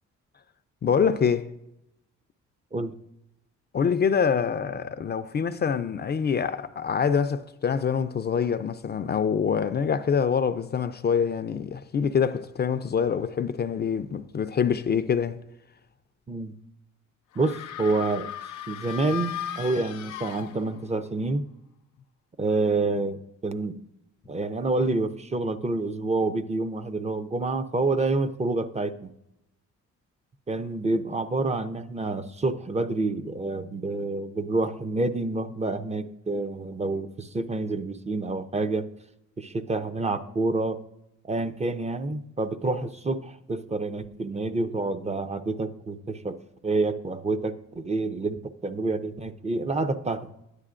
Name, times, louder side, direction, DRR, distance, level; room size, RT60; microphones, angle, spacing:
voice 1, 0.8-1.5 3.7-15.4, left 7 dB, 35° left, 0.4 m, -25 dB
sound 1, 17.3-21.0, left 11 dB, 85° left, 0.6 m, -37 dB
voice 2, 17.4-18.3 18.7-21.4 22.4-23.8 24.3-29.1 30.5-38.9 39.4-40.8 41.2-46.4 46.6-50.3, right 3 dB, 20° right, 0.5 m, -28 dB
12.5 x 9.7 x 2.5 m
cardioid pair, 90°, 30 cm